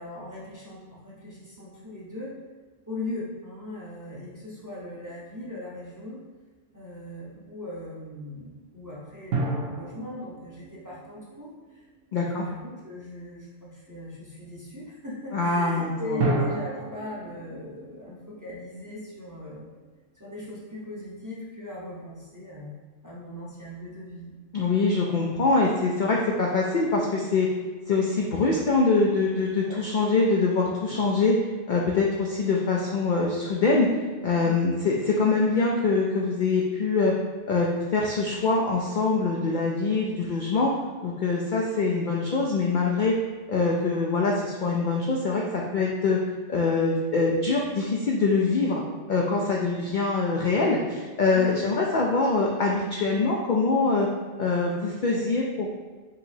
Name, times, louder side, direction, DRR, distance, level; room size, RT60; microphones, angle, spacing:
voice 1, 0.0-2.3 2.9-6.2 6.7-11.8 12.1-19.7 20.2-22.8 23.0-24.3 29.6-29.8 34.4-34.6 49.4-49.6 51.3-51.5, left 2 dB, 20° right, -7 dB, 0.7 m, -38 dB
sound 1, 5.1-5.7 9.3-12.1 16.2-19.4, right 3 dB, 90° right, 1.2 m, -33 dB
voice 2, 12.1-12.5 15.3-16.3 24.5-27.5 27.9-31.4 31.7-34.0 34.2-37.1 37.5-40.7 41.0-43.2 43.5-46.2 46.5-48.8 49.1-54.1 54.4-55.7, left 3 dB, 60° left, -2 dB, 0.5 m, -24 dB
5.5 x 3.0 x 2.7 m, 1.3 s
omnidirectional pair, 1.3 m